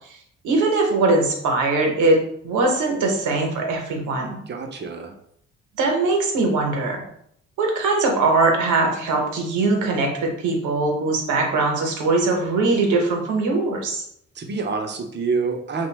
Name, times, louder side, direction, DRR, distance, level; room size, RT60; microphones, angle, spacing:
voice 1, 0.4-2.2 2.4-4.4 5.8-7.0 7.6-14.0, right 3 dB, 80° right, 1 dB, 0.8 m, -21 dB
voice 2, 4.5-5.1 14.4-15.9, right 4 dB, 35° right, 4 dB, 0.5 m, -27 dB
2.6 x 2.2 x 3.2 m, 0.70 s
cardioid pair, 90°, 30 cm